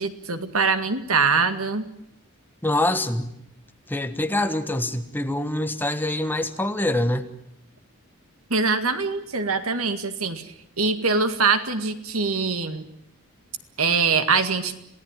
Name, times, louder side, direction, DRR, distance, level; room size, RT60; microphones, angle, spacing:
voice 1, 0.0-1.9 8.5-10.5 10.8-12.8 13.8-14.7, right 4 dB, 75° right, 9 dB, 2.0 m, -23 dB
voice 2, 2.6-3.3 3.9-7.3, left 1 dB, 10° left, 8 dB, 1.3 m, -25 dB
27.0 x 18.0 x 9.1 m, 0.77 s
head